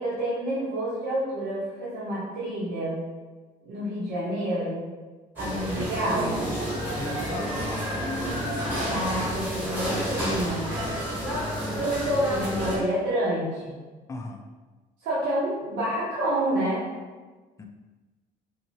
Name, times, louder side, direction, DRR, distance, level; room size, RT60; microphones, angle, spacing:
voice 1, 0.0-3.0 3.6-4.8 5.4-6.4 8.9-10.7 11.8-13.8 15.0-16.9, right 1 dB, 80° right, -9 dB, 0.8 m, -28 dB
sound 1, 5.4-12.8, equal, 10° right, 1.0 m, -30 dB
voice 2, 7.0-8.1 14.1-14.4 17.6-17.7, left 2 dB, 15° left, 3 dB, 0.3 m, -37 dB
2.8 x 2.6 x 2.8 m, 1.3 s
cardioid pair, 110°, 17 cm